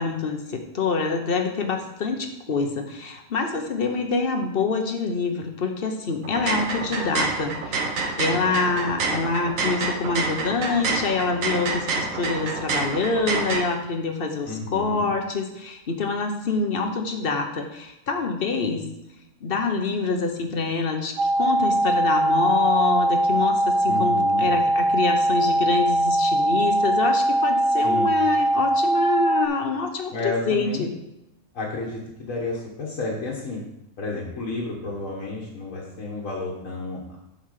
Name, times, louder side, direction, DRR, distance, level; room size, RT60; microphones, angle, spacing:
voice 1, 0.0-7.6 8.2-18.9 19.4-30.9, left 4 dB, 50° left, 4 dB, 1.1 m, -26 dB
sound 1, 6.2-13.6, right 4 dB, 85° right, 1.3 m, -28 dB
voice 2, 14.5-15.0 23.9-24.5 27.8-28.1 30.1-30.9 31.5-33.6 34.0-37.2, left 3 dB, 75° left, -4 dB, 1.7 m, -31 dB
sound 2, 21.2-29.5, right 1 dB, 55° right, 0.6 m, -21 dB
7.8 x 4.0 x 6.5 m, 0.89 s
omnidirectional pair, 1.4 m